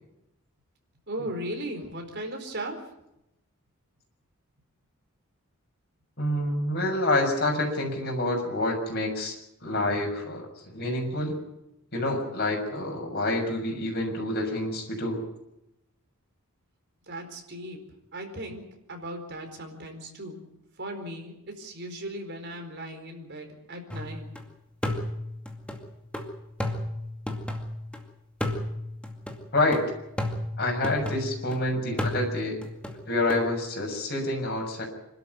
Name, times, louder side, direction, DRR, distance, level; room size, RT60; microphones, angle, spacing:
voice 1, 1.1-2.9 17.1-20.5 20.8-24.3, right 1 dB, 50° right, 4 dB, 4.5 m, -37 dB
voice 2, 6.2-9.3 9.6-11.4 11.9-15.2 29.5-29.8 30.6-32.6 33.0-34.8, left 1 dB, 45° left, 1 dB, 6.7 m, -27 dB
sound 1, 23.9-24.4 24.8-28.0 28.4-31.6 32.0-33.4, left 1 dB, 5° left, 2.3 m, -33 dB
26.5 x 13.0 x 9.4 m, 0.86 s
head